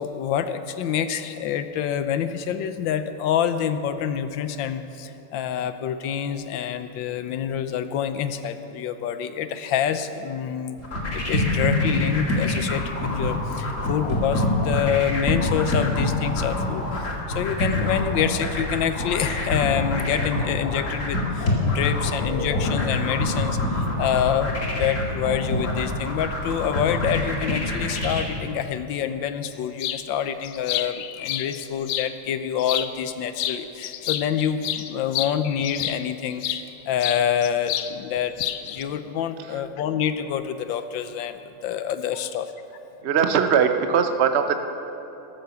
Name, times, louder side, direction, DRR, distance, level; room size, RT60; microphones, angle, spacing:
voice 1, 0.0-10.8 11.1-38.4 38.6-42.5, left 8 dB, 70° left, 11 dB, 1.3 m, -27 dB
sound 1, 10.8-28.2, left 2 dB, 35° left, 2.3 m, -25 dB
sound 2, 29.8-30.0 30.4-32.1 32.6-33.1 33.4-36.6 37.0-37.9 38.2-38.8, left 12 dB, 85° left, 1.6 m, -29 dB
voice 2, 43.0-44.6, right 7 dB, 80° right, 7 dB, 0.5 m, -20 dB
13.5 x 13.0 x 6.9 m, 3.0 s
omnidirectional pair, 2.4 m